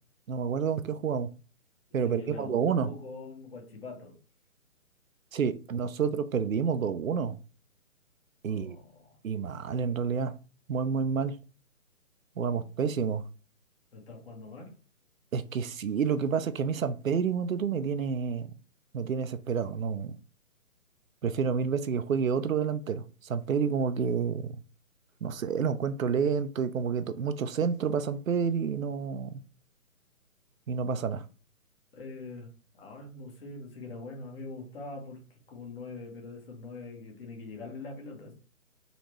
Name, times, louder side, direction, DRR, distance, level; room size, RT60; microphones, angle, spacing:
voice 1, 0.3-1.3 1.9-2.9 5.3-7.4 8.4-8.8 9.2-10.3 10.7-11.4 12.4-13.2 15.3-18.5 18.9-20.2 21.2-24.5 25.2-29.4 30.7-31.2, right 6 dB, 70° right, 0.6 m, -29 dB
voice 2, 2.0-4.1 8.5-9.2 12.4-12.7 13.9-14.7 31.9-32.5 32.8-35.2 35.5-38.3, left 3 dB, 40° left, 1.6 m, -43 dB
4.0 x 3.3 x 3.0 m
figure-of-eight pair, 145°, 43 cm